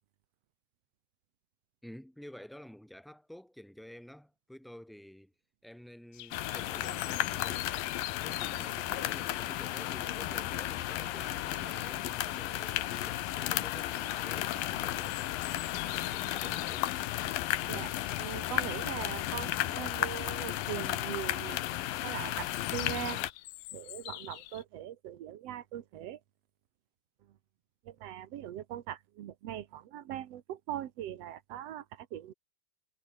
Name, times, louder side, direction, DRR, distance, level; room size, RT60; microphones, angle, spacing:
voice 1, 1.8-5.3 5.6-7.7 8.2-15.3 15.7-16.9, equal, ahead, 4.8 m, -50 dB
sound 1, 6.1-24.6, left 18 dB, 85° left, 3.0 m, -48 dB
sound 2, 6.3-23.3, left 14 dB, 70° left, 2.6 m, -34 dB
sound 3, 6.6-14.8, left 7 dB, 45° left, 3.7 m, -54 dB
voice 2, 18.2-21.6 22.0-23.2 23.7-26.2 27.8-32.3, right 11 dB, 75° right, 1.4 m, -41 dB
omnidirectional pair, 4.6 m